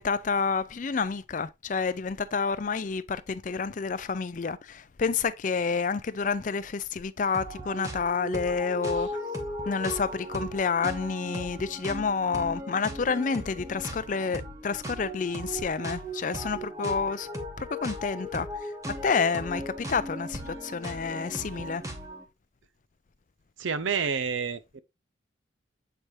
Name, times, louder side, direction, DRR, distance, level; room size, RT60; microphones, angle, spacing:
voice 1, 0.0-9.1 9.7-17.3 17.6-18.5 19.0-21.8, left 5 dB, 40° left, 0.4 m, -29 dB
sound 1, 7.3-22.2, equal, 15° right, 1.1 m, -37 dB
voice 2, 23.6-24.8, right 6 dB, 85° right, 0.7 m, -29 dB
7.8 x 4.7 x 2.7 m
head